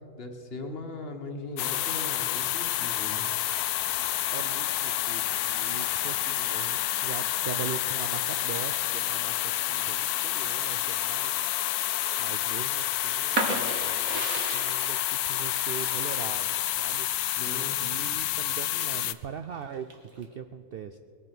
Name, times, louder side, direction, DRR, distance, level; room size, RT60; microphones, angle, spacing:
voice 1, 0.2-3.2 17.4-18.1, left 2 dB, 40° left, 4 dB, 1.5 m, -39 dB
sound 1, 1.6-19.1, left 13 dB, 85° left, 1.1 m, -29 dB
voice 2, 4.3-11.3 12.2-17.1 17.8-21.0, right 7 dB, 85° right, 9 dB, 0.5 m, -41 dB
sound 2, 13.3-18.9 19.4-20.2, right 3 dB, 65° right, 2.0 m, -34 dB
21.0 x 9.6 x 5.9 m, 2.7 s
omnidirectional pair, 1.6 m